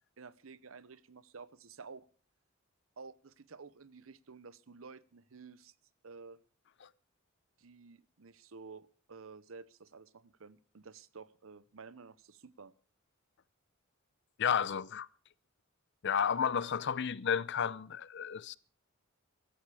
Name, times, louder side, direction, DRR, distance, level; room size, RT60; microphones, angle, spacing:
voice 1, 0.2-2.1 3.0-5.7 6.0-6.4 7.6-12.7, right 4 dB, 75° right, 0.8 m, -52 dB
voice 2, 14.4-15.1 16.0-18.6, left 7 dB, 60° left, 0.6 m, -32 dB
16.0 x 13.5 x 4.9 m
head